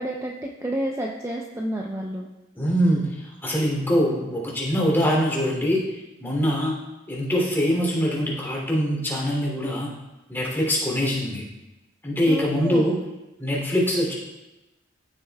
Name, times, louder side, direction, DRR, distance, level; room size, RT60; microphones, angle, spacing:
voice 1, 0.0-2.3 12.2-13.0, right 1 dB, 15° right, -1 dB, 0.6 m, -30 dB
voice 2, 2.6-3.1 3.4-6.8 7.1-9.9 10.3-11.4 12.0-13.0 13.4-14.1, equal, 10° left, -4 dB, 2.9 m, -23 dB
14.5 x 8.1 x 2.3 m, 1.0 s
head